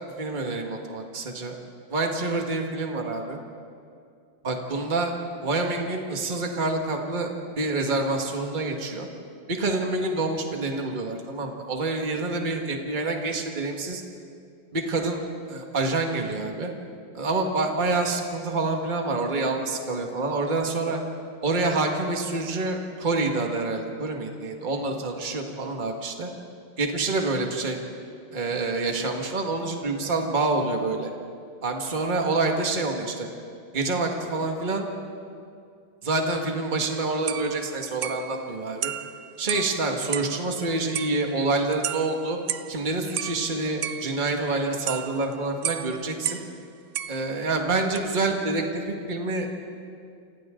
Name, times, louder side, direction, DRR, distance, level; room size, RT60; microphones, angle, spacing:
voice 1, 0.2-1.6 1.9-3.4 4.4-5.1 5.4-9.1 9.5-14.0 14.7-15.2 15.5-16.7 17.1-21.0 21.4-26.3 26.8-27.8 28.3-31.1 31.6-33.3 33.7-34.9 36.0-38.9 39.4-42.4 42.7-46.4 47.1-49.6, right 3 dB, 25° right, 2 dB, 1.8 m, -27 dB
sound 1, 36.9-37.0 37.3-40.5 40.9-42.8 43.2-46.6 46.9-47.6 47.9-48.0, right 10 dB, 85° right, 0.6 m, -34 dB
28.5 x 28.0 x 3.8 m, 2.4 s
omnidirectional pair, 2.2 m